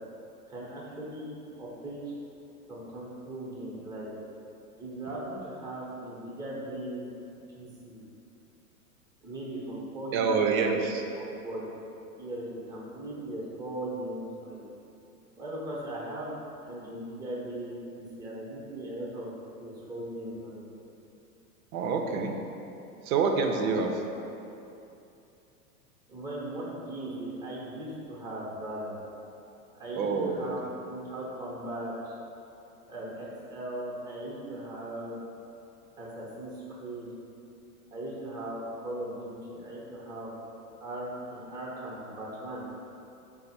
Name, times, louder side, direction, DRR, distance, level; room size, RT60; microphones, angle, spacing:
voice 1, 0.5-2.1 2.7-4.1 4.8-7.1 7.5-8.0 9.2-10.8 11.2-11.7 12.2-14.6 15.4-19.3 19.6-20.6 23.7-23.8 26.1-29.0 29.7-32.1 32.9-35.2 36.0-37.1 37.9-40.3 40.8-42.6, right 1 dB, 10° right, -6 dB, 0.7 m, -38 dB
voice 2, 10.1-11.0 21.7-22.4 23.1-23.9 30.0-30.5, right 5 dB, 65° right, 3 dB, 0.6 m, -27 dB
4.0 x 2.0 x 4.2 m, 2.8 s
hypercardioid pair, 105°, 46 cm